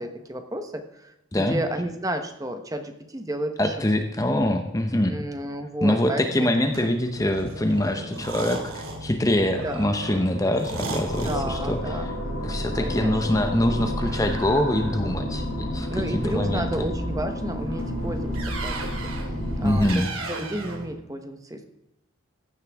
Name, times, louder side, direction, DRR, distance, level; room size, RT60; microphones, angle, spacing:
voice 1, 0.0-3.7 5.1-6.5 6.8-6.9 9.6-9.9 11.1-12.1 12.8-13.4 15.9-19.1 19.6-21.7, right 1 dB, 15° right, 7 dB, 1.0 m, -32 dB
voice 2, 3.6-5.2 5.8-12.1 12.4-16.7 19.6-20.1, left 1 dB, 15° left, 6 dB, 0.7 m, -24 dB
sound 1, 6.5-20.9, right 1 dB, 80° right, 2.3 m, -35 dB
sound 2, 11.1-19.9, left 1 dB, 65° left, 5.1 m, -31 dB
15.0 x 10.5 x 3.5 m, 0.92 s
head